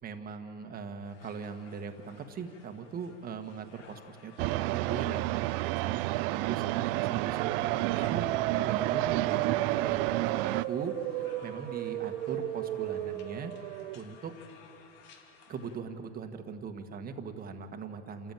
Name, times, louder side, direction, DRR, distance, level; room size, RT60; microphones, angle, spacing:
voice 1, 0.0-5.3 5.8-6.0 6.3-8.3 8.6-11.0 11.4-13.5 13.9-14.4 15.5-18.3, right 5 dB, 25° right, 6 dB, 1.5 m, -40 dB
sound 1, 1.0-15.8, left 7 dB, 70° left, 2.7 m, -57 dB
sound 2, 4.4-10.7, right 20 dB, 50° right, 0.4 m, -30 dB
sound 3, 7.1-14.0, right 14 dB, 70° right, 1.0 m, -34 dB
29.0 x 14.0 x 9.1 m, 2.8 s
supercardioid pair, 140°, 37 cm